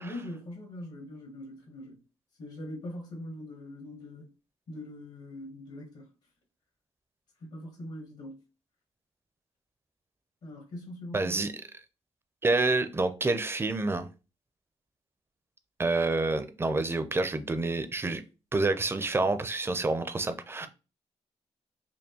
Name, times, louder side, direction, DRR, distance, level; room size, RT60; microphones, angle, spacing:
voice 1, 0.0-2.0 2.4-4.3 4.7-6.1 7.4-8.4 10.4-11.4 20.6-20.7, left 1 dB, 65° left, 1.1 m, -42 dB
voice 2, 11.1-11.5 12.4-14.1 15.8-18.2 18.5-20.7, right 3 dB, 20° right, 0.5 m, -28 dB
4.4 x 2.6 x 2.8 m
cardioid pair, 95°, 12 cm